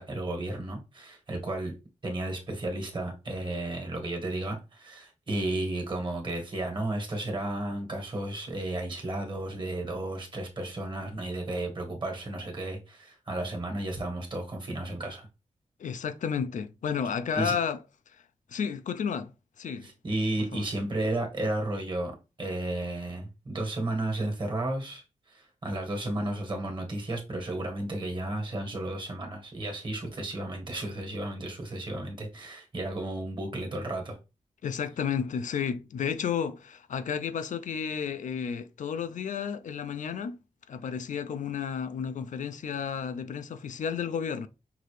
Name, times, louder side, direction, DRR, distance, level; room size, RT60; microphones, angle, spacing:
voice 1, 0.0-1.7 2.0-15.3 17.3-17.6 19.8-34.2, right 1 dB, 40° right, 1.5 m, -33 dB
voice 2, 15.8-17.8 18.5-19.3 19.6-19.9 20.5-20.7 34.6-40.4 40.7-44.5, left 7 dB, 85° left, 0.5 m, -32 dB
5.9 x 2.7 x 3.2 m
wide cardioid pair, 155°, 13 cm